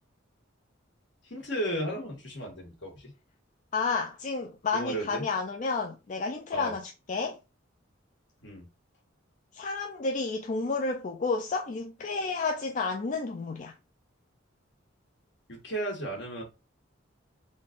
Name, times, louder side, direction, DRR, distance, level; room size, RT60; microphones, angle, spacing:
voice 1, 1.2-3.1 4.7-5.2 6.5-6.7 8.4-8.6 15.5-16.4, right 1 dB, 65° left, 1.6 m, -34 dB
voice 2, 3.7-7.4 9.5-13.7, left 4 dB, 40° left, 0.4 m, -31 dB
3.8 x 2.5 x 3.7 m
head